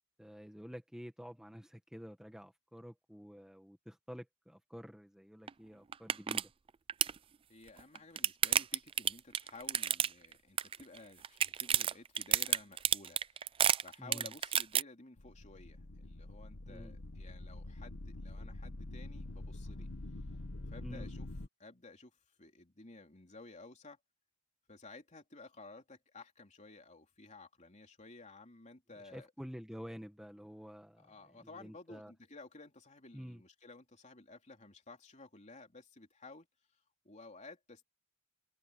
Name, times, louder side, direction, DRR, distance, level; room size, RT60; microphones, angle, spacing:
voice 1, 0.2-6.5 14.0-14.3 16.7-16.9 20.8-21.1 29.1-31.1 31.4-32.1 33.1-33.4, equal, 5° right, 1.9 m, -49 dB
sound 1, 5.5-5.6 5.9-6.4 6.7-7.2 7.8-10.3 10.6-11.0 11.2-14.8, right 9 dB, 25° right, 0.4 m, -30 dB
voice 2, 7.5-13.6 13.8-19.9 20.7-21.3 21.6-22.1 22.4-24.0 24.7-29.5 31.0-36.5 36.7-37.8, left 3 dB, 35° left, 3.2 m, -54 dB
sound 2, 15.2-21.5, left 2 dB, 70° left, 1.3 m, -46 dB
head